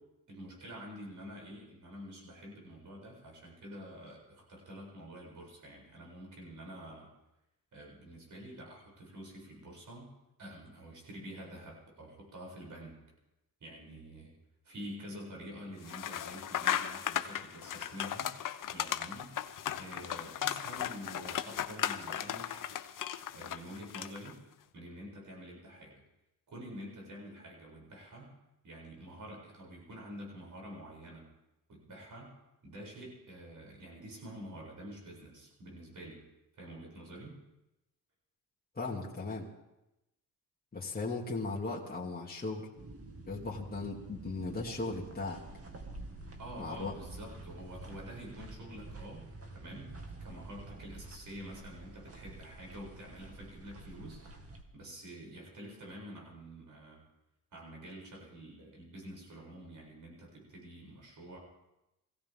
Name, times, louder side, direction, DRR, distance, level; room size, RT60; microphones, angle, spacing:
voice 1, 0.3-7.1 7.7-10.1 10.4-13.0 13.6-14.3 14.6-18.3 18.6-19.4 19.7-22.7 23.3-24.4 24.7-26.0 26.5-28.4 28.6-31.3 31.7-32.4 32.6-36.3 36.6-37.4 46.4-49.3 49.5-54.2 54.7-57.0 57.5-61.4, equal, 60° right, -2 dB, 7.6 m, -48 dB
sound 1, 15.8-24.3, left 10 dB, 65° left, 0.8 m, -36 dB
voice 2, 38.7-39.5 40.7-42.7 43.3-45.4 46.6-46.9, left 3 dB, 25° left, -4 dB, 2.6 m, -37 dB
sound 2, 42.8-54.6, right 2 dB, 40° right, 2.2 m, -48 dB
21.0 x 16.5 x 3.8 m, 0.92 s
cardioid pair, 85°, 35 cm